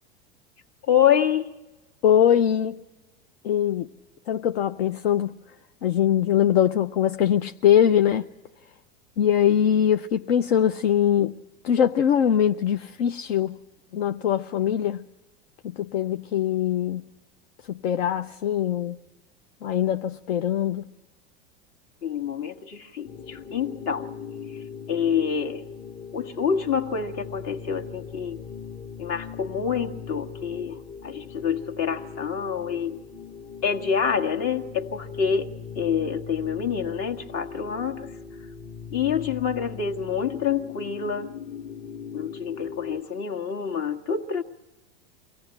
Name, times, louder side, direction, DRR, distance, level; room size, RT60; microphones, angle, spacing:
voice 1, 0.9-1.5 22.0-24.1 24.9-25.6 26.1-28.4 29.0-33.0 33.6-38.1 38.9-41.3 42.1-44.4, left 7 dB, 50° left, 1.8 m, -27 dB
voice 2, 2.0-2.8 3.4-3.9 4.3-5.3 5.8-8.2 9.2-11.4 11.6-13.6 13.9-15.0 15.6-17.1 17.7-19.0 19.6-20.9, left 9 dB, 75° left, 0.7 m, -22 dB
sound 1, 23.0-43.0, left 6 dB, 35° left, 1.0 m, -40 dB
24.5 x 17.0 x 9.9 m
hypercardioid pair, 95°, 31 cm